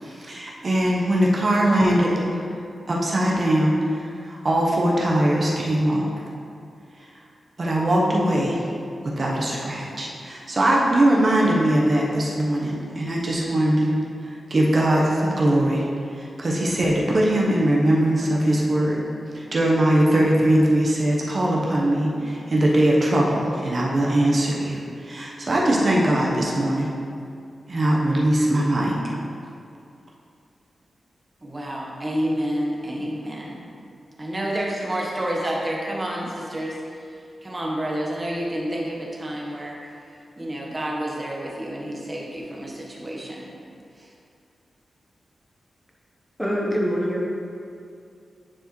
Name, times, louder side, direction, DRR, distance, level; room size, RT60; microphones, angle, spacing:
voice 1, 0.0-2.4 2.9-6.2 7.6-8.6 9.2-13.9 14.5-15.8 16.1-19.0 19.3-26.9 27.7-28.9, right 1 dB, 40° right, -3 dB, 0.9 m, -21 dB
voice 2, 31.4-33.6 34.2-37.1 37.4-39.9 40.4-43.5 44.0-44.1, right 1 dB, 20° right, -3 dB, 1.1 m, -29 dB
voice 3, 46.4-47.3, equal, 5° left, -4 dB, 0.8 m, -24 dB
9.9 x 4.5 x 3.1 m, 2.4 s
wide cardioid pair, 130°, 0 cm